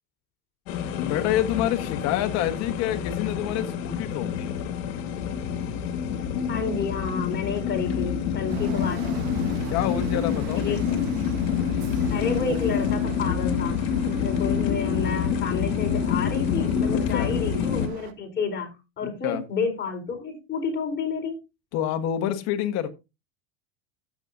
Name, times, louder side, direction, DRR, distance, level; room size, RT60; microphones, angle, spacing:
sound 1, 0.7-17.9, left 7 dB, 70° left, 2.1 m, -27 dB
voice 1, 0.9-4.5 9.0-9.3 9.7-11.0 16.9-17.3 19.2-19.4 21.7-22.9, left 11 dB, 55° left, 9 dB, 1.7 m, -28 dB
voice 2, 6.5-9.2 10.5-10.8 12.1-13.8 14.1-21.4, left 5 dB, 30° left, 1 dB, 4.6 m, -30 dB
sound 2, 8.5-18.1, right 9 dB, 75° right, 1.5 m, -41 dB
15.0 x 7.6 x 2.7 m, 0.26 s
supercardioid pair, 110°, 32 cm